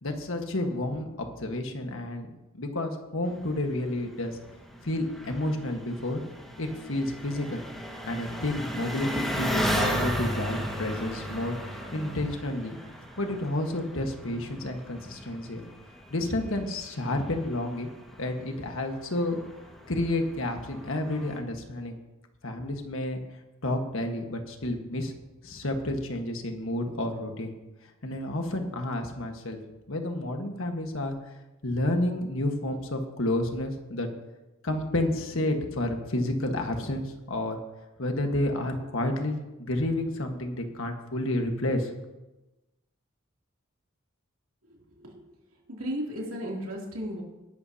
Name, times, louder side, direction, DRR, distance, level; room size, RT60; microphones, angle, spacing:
voice 1, 0.0-2.3 2.5-4.4 4.8-6.2 6.6-7.6 8.0-11.6 11.9-12.8 13.2-15.6 16.1-17.9 18.2-19.4 19.9-22.0 22.4-23.2 23.6-25.1 25.4-27.5 28.0-29.6 29.9-31.1 31.6-34.1 34.6-37.6 38.0-41.9, left 1 dB, 65° left, 4 dB, 1.5 m, -30 dB
Engine, 3.3-21.4, equal, ahead, 1.7 m, -36 dB
voice 2, 44.7-45.2 45.7-47.2, equal, 70° right, -2 dB, 3.0 m, -35 dB
18.5 x 11.0 x 2.9 m, 1.1 s
head